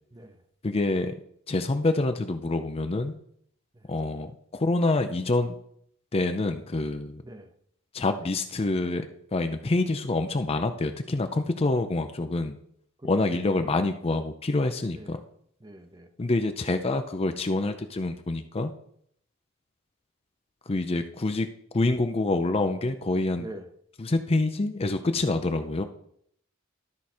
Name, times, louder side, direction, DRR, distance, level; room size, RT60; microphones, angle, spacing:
voice 1, 0.1-0.4 3.7-3.9 7.2-7.5 13.0-13.1 13.6-13.7 14.9-15.2 15.6-16.1 23.4-23.7, right 1 dB, 20° right, 7 dB, 0.7 m, -44 dB
voice 2, 0.6-1.1 1.5-3.1 3.9-5.6 6.1-7.2 7.9-9.1 9.3-12.6 13.0-15.2 16.2-18.7 20.7-21.5 21.7-23.5 24.0-25.8, left 2 dB, 30° left, 8 dB, 0.5 m, -26 dB
12.5 x 4.8 x 4.3 m, 0.67 s
head